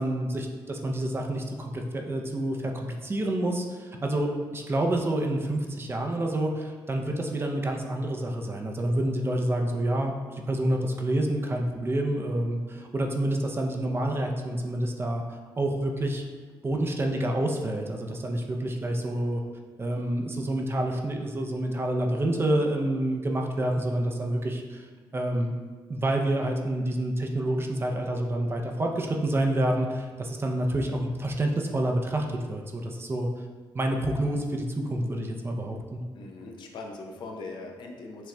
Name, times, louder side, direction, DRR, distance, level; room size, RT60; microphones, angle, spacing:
voice 1, 0.0-16.2 16.6-19.4 19.8-24.9 25.1-25.5 25.9-33.3 33.7-36.0, right 1 dB, 25° right, 2 dB, 0.5 m, -28 dB
voice 2, 36.1-38.3, left 3 dB, 65° left, 1 dB, 0.6 m, -40 dB
5.9 x 3.0 x 2.2 m, 1.5 s
cardioid pair, 90°, 9 cm